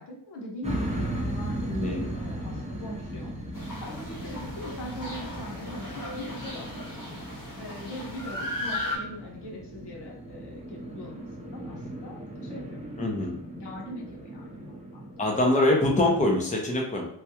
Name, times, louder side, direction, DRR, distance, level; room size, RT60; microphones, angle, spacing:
voice 1, 0.0-3.3 3.8-6.8 7.6-12.8 13.6-15.0, left 1 dB, 70° left, -2 dB, 1.0 m, -41 dB
sound 1, 0.6-15.4, right 1 dB, 15° right, 0.7 m, -37 dB
voice 2, 1.7-2.1 13.0-13.4 15.2-17.1, left 1 dB, 20° left, 0 dB, 0.6 m, -24 dB
sound 2, 3.5-9.0, left 1 dB, 50° left, 1.3 m, -37 dB
3.4 x 2.3 x 2.9 m, 0.69 s
wide cardioid pair, 95°, 42 cm